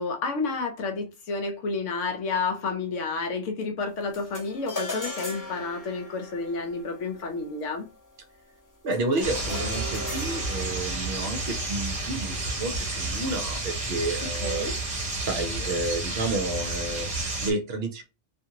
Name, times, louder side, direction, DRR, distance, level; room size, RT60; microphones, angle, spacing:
voice 1, 0.0-7.8 14.4-14.7, left 4 dB, 70° left, 0.9 m, -30 dB
sound 1, 4.1-13.6, left 2 dB, 20° left, 0.6 m, -40 dB
voice 2, 8.8-14.7 15.2-18.0, right 2 dB, 60° right, 0.7 m, -30 dB
sound 2, 9.2-17.5, right 2 dB, 35° right, 1.0 m, -31 dB
2.6 x 2.5 x 2.7 m
omnidirectional pair, 1.4 m